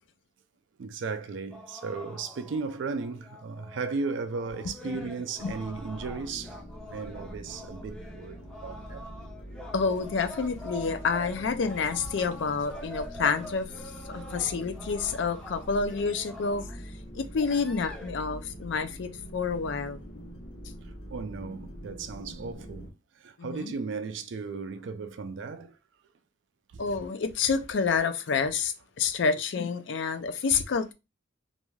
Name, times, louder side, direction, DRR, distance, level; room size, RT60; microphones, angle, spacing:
voice 1, 0.8-6.6 6.9-9.1 14.1-14.2 17.1-17.2 20.8-22.9 23.2-25.8 26.7-26.8, right 4 dB, 65° right, 0.4 m, -36 dB
sound 1, 1.5-16.8 17.3-18.1, left 1 dB, 5° left, 0.5 m, -45 dB
sound 2, 5.4-22.9, equal, 80° left, 1.1 m, -44 dB
voice 2, 9.7-13.7 14.1-16.8 17.1-20.0 23.4-23.7 26.8-30.9, left 5 dB, 60° left, 0.4 m, -28 dB
2.5 x 2.3 x 3.1 m
head